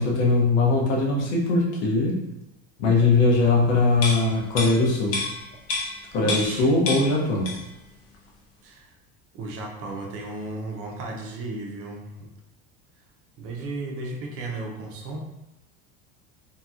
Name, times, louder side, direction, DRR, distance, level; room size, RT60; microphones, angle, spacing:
voice 1, 0.0-2.2 2.8-5.2 6.1-7.5, left 3 dB, 80° left, -2 dB, 1.0 m, -21 dB
sound 1, 4.0-6.6 6.9-7.8 8.1-8.3, left 3 dB, 45° left, 0.7 m, -30 dB
voice 2, 6.2-6.7 8.6-8.9 9.3-12.1 13.4-15.2, right 2 dB, 45° right, 0 dB, 0.6 m, -34 dB
2.9 x 2.8 x 2.4 m, 0.93 s
cardioid pair, 155°, 34 cm